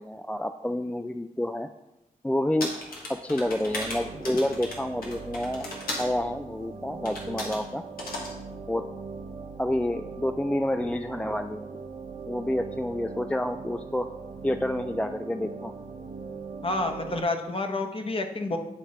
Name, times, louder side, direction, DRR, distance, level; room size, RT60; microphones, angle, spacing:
voice 1, 0.0-1.7 2.2-2.7 3.1-5.7 6.0-7.8 8.7-8.9 9.6-11.7 12.3-14.1 14.4-15.7, left 1 dB, 10° left, 8 dB, 0.3 m, -29 dB
sound 1, 2.6-6.1 7.1-7.6 8.0-8.3, left 2 dB, 85° left, 1.4 m, -36 dB
sound 2, 3.4-17.2, right 4 dB, 70° right, 0.9 m, -40 dB
voice 2, 16.6-18.6, left 2 dB, 40° left, 5 dB, 1.0 m, -29 dB
9.9 x 3.7 x 4.2 m, 0.94 s
cardioid pair, 55°, 15 cm